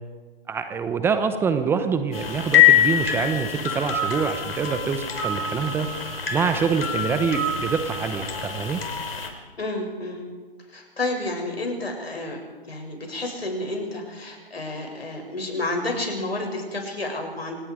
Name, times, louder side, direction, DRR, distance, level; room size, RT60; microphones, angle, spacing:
voice 1, 0.5-8.8, right 6 dB, 10° right, 8 dB, 0.9 m, -25 dB
sound 1, 2.1-9.3, left 8 dB, 70° left, 5.2 m, -24 dB
voice 2, 9.6-10.2 10.7-12.4 12.7-17.6, left 2 dB, 85° left, 2 dB, 7.6 m, -30 dB
27.0 x 19.5 x 5.1 m, 1.4 s
figure-of-eight pair, 140°, 30 cm